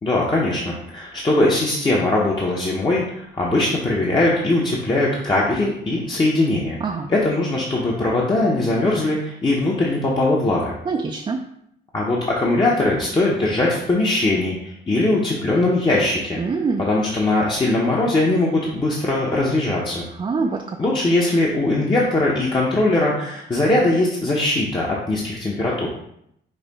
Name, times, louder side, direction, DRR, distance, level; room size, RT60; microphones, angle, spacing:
voice 1, 0.0-6.8 7.1-10.7 11.9-16.4 16.9-20.0 20.8-25.9, left 2 dB, 25° left, -4 dB, 0.8 m, -20 dB
voice 2, 10.9-11.4 16.4-16.9 20.2-20.6, right 4 dB, 25° right, 2 dB, 0.4 m, -24 dB
5.5 x 2.1 x 4.0 m, 0.74 s
cardioid pair, 90°, 20 cm